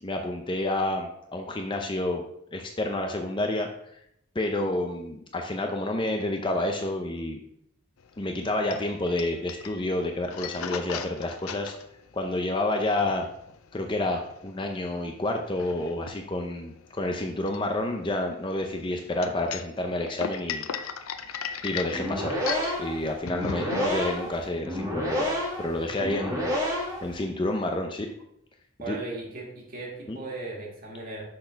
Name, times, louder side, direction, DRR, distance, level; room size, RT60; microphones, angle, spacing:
voice 1, 0.0-2.2 2.5-3.7 4.3-7.4 8.2-11.7 12.1-13.3 13.7-20.7 21.6-22.4 22.8-25.3 25.6-28.1 28.9-29.0 30.1-30.2, left 1 dB, 25° left, 3 dB, 0.5 m, -29 dB
sound 1, 8.0-24.7, left 7 dB, 80° left, 0.5 m, -38 dB
sound 2, 21.9-27.1, left 1 dB, 15° right, 1.7 m, -29 dB
voice 2, 28.8-31.2, right 2 dB, 40° right, -2 dB, 2.0 m, -37 dB
6.5 x 4.1 x 5.6 m, 0.75 s
head